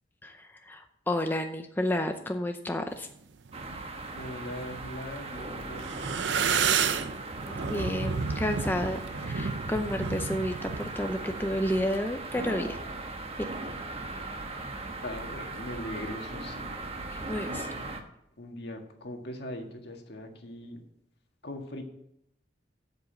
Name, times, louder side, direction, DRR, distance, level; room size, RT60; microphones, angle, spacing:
voice 1, 0.2-3.1 7.5-12.8 17.1-17.7, left 1 dB, 10° left, 5 dB, 0.6 m, -31 dB
sound 1, 3.5-18.0, right 2 dB, 35° right, 1.2 m, -38 dB
sound 2, 3.5-3.9 4.4-5.4 5.7-11.9, right 6 dB, 80° right, 0.6 m, -31 dB
voice 2, 4.2-7.0 15.0-16.7 17.1-18.0 18.4-20.8 21.4-21.8, left 1 dB, 65° left, 3 dB, 1.8 m, -41 dB
8.1 x 7.3 x 8.1 m, 0.78 s
head